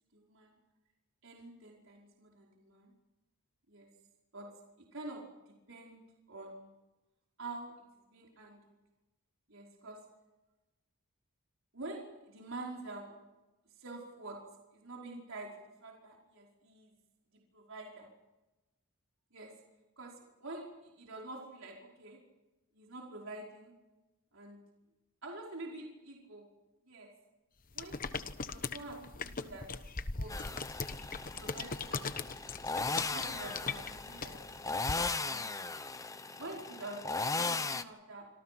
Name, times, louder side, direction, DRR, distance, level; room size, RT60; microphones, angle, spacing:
voice 1, 0.1-0.6 1.2-2.9 3.7-3.9 4.3-4.5 4.9-6.0 6.3-6.7 7.4-8.7 9.5-10.0 11.7-13.1 13.8-14.4 14.7-15.5 15.8-16.9 17.5-18.1 19.3-19.5 20.0-22.2 22.7-23.7 24.3-24.6 25.2-26.5 26.8-27.1 27.7-28.0 28.4-29.7 30.1-30.6 30.9-32.1 32.6-35.6 36.4-38.3, right 2 dB, 60° right, -1 dB, 5.1 m, -47 dB
sound 1, 27.7-34.9, left 4 dB, 40° left, 1.1 m, -40 dB
sound 2, 30.3-37.8, left 3 dB, 15° left, 0.9 m, -37 dB
27.0 x 26.5 x 6.1 m, 1.1 s
head